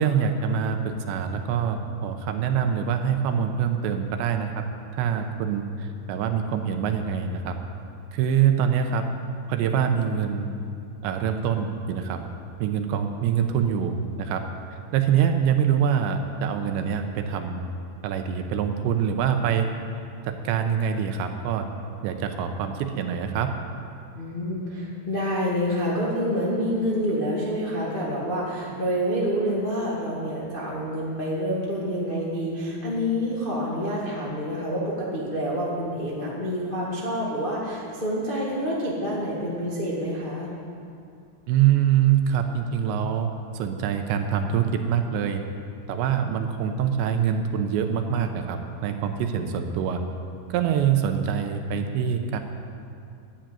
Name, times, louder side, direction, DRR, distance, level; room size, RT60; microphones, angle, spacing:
voice 1, 0.0-4.5 4.9-7.5 8.1-9.0 9.5-10.5 11.0-12.2 12.6-14.4 14.9-17.6 18.0-19.7 20.3-21.7 22.0-23.5 41.5-43.3 43.5-45.4 45.9-50.0 50.5-52.4, right 8 dB, 80° right, 6 dB, 2.9 m, -24 dB
voice 2, 24.1-40.5, equal, 85° left, -6 dB, 0.4 m, -27 dB
11.5 x 10.0 x 9.1 m, 2.5 s
omnidirectional pair, 5.4 m